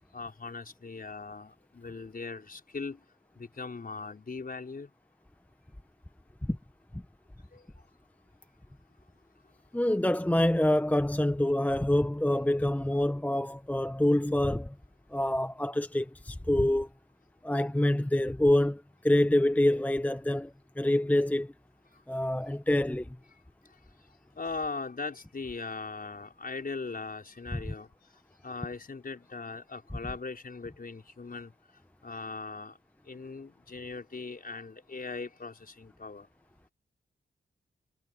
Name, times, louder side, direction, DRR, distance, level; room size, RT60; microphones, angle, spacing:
voice 1, 0.1-3.0 3.3-4.9 7.5-7.7 24.4-27.9 28.4-31.5 32.0-32.8 33.1-36.3, left 4 dB, 50° left, 5.1 m, -39 dB
voice 2, 9.7-14.7 15.1-16.9 17.4-21.5 22.1-23.2, left 1 dB, 10° left, 1.0 m, -26 dB
cardioid pair, 55°, 20 cm